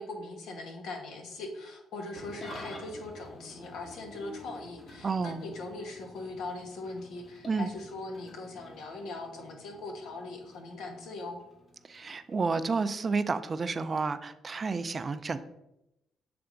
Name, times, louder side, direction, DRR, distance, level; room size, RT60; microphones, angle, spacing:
voice 1, 0.0-11.4, left 2 dB, 80° left, 4 dB, 1.1 m, -40 dB
Engine starting / Idling, 2.1-12.7, left 1 dB, 45° left, 1.6 m, -49 dB
voice 2, 5.0-5.4 7.5-7.7 11.9-15.4, right 4 dB, 35° right, 12 dB, 0.4 m, -30 dB
7.8 x 3.4 x 3.8 m, 0.86 s
cardioid pair, 90°, 0 cm